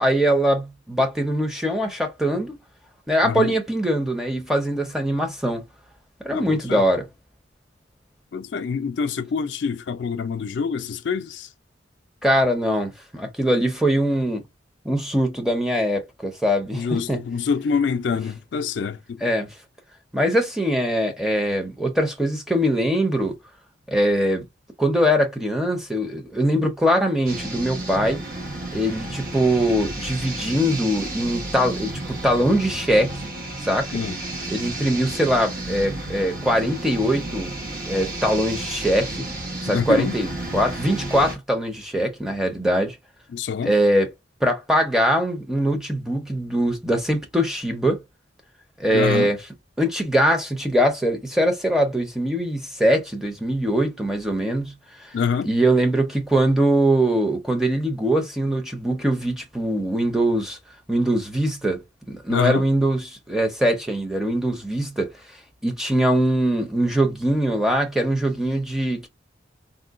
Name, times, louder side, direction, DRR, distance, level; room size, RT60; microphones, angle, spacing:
voice 1, 0.0-2.6 3.1-5.6 6.2-7.1 12.2-14.4 14.8-17.2 19.2-19.5 20.1-23.4 23.9-24.5 24.8-28.2 28.7-33.1 33.6-33.9 34.5-37.5 37.9-39.1 39.6-43.0 43.6-44.1 44.4-48.0 48.8-49.4 49.8-54.7 55.4-60.6 60.9-61.8 62.1-65.1 65.6-69.1, equal, 5° right, 0.6 m, -22 dB
voice 2, 3.2-3.5 6.3-6.8 8.3-11.5 16.7-19.2 33.9-34.2 39.7-40.2 43.3-43.7 48.9-49.3 55.1-55.5 62.3-62.6, left 6 dB, 65° left, 0.4 m, -25 dB
sound 1, 27.3-41.4, right 2 dB, 50° right, 0.9 m, -32 dB
3.7 x 2.2 x 2.4 m
head